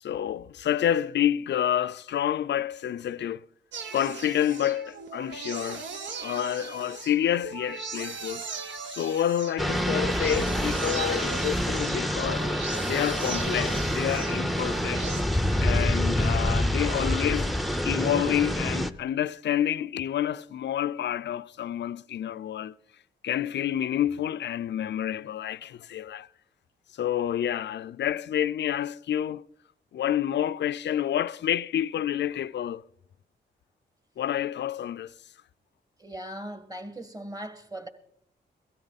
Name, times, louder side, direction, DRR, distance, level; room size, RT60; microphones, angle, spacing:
voice 1, 0.0-3.4 3.9-5.9 6.2-8.4 8.9-12.5 12.8-15.1 15.6-17.5 17.8-22.8 23.2-26.3 26.9-29.5 29.9-32.8 34.2-35.1, left 10 dB, 65° left, 0.4 m, -28 dB
sound 1, 3.7-15.2, right 5 dB, 75° right, 1.1 m, -39 dB
sound 2, 9.6-18.9, equal, ahead, 0.7 m, -27 dB
voice 2, 36.0-37.9, right 1 dB, 20° right, 1.8 m, -39 dB
17.5 x 13.0 x 4.1 m
cardioid pair, 65°, 19 cm